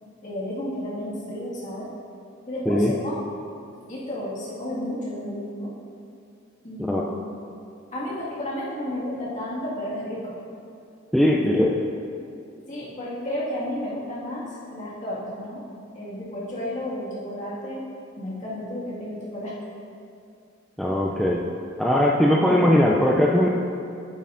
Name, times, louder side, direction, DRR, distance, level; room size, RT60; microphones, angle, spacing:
voice 1, 0.0-1.9 2.5-3.1 3.9-5.7 6.6-7.2 7.9-10.4 11.3-11.6 12.7-15.6 15.9-17.9 18.2-19.5, left 1 dB, 40° left, -7 dB, 1.9 m, -32 dB
voice 2, 6.8-7.1 11.1-11.8 20.8-21.4 21.8-23.5, left 1 dB, ahead, -3 dB, 0.4 m, -20 dB
9.1 x 8.3 x 2.6 m, 2.5 s
head